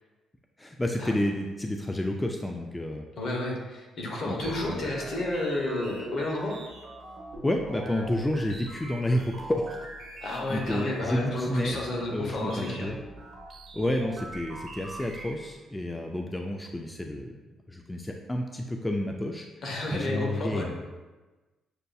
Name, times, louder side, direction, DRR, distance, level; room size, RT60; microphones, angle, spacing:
voice 1, 0.6-3.0 4.2-4.3 4.6-4.8 7.4-9.8 10.2-11.8 12.1-13.0 13.7-17.4 17.7-19.5 19.9-20.8, left 1 dB, 15° left, 2 dB, 0.3 m, -30 dB
voice 2, 3.2-6.6 10.2-12.9 19.6-20.7, left 1 dB, 65° left, -1 dB, 1.0 m, -31 dB
sound 1, 4.4-15.5, right 1 dB, 65° right, 0.9 m, -43 dB
6.6 x 2.6 x 2.3 m, 1.2 s
cardioid pair, 90°, 0 cm